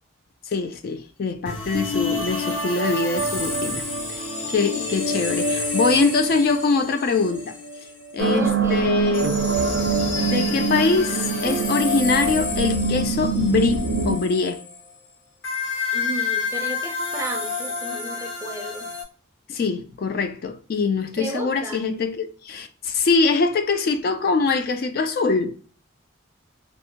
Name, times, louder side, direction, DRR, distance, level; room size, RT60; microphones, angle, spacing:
voice 1, 0.5-3.8 4.1-7.6 8.1-9.4 10.2-14.6 19.5-25.5, left 4 dB, 50° left, 0.3 m, -23 dB
sound 1, 1.5-8.2 9.1-14.9 15.4-19.0, left 2 dB, 75° left, 1.1 m, -28 dB
sound 2, 8.2-14.1, right 5 dB, 85° right, 0.5 m, -24 dB
voice 2, 8.3-9.4 15.9-18.9 21.2-21.9, right 2 dB, 15° right, 0.4 m, -34 dB
2.6 x 2.1 x 2.7 m
head